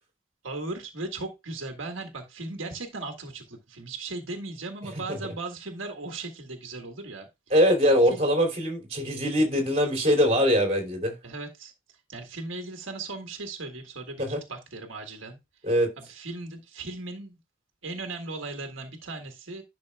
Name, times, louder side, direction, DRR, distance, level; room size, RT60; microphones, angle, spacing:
voice 1, 0.4-7.3 8.0-8.2 9.3-9.6 11.2-11.7 12.1-15.4 16.0-17.4 17.8-19.6, right 3 dB, 85° right, 1.6 m, -37 dB
voice 2, 7.5-11.1 14.2-14.4 15.6-15.9, equal, 30° right, 2.9 m, -22 dB
11.0 x 5.8 x 2.3 m
head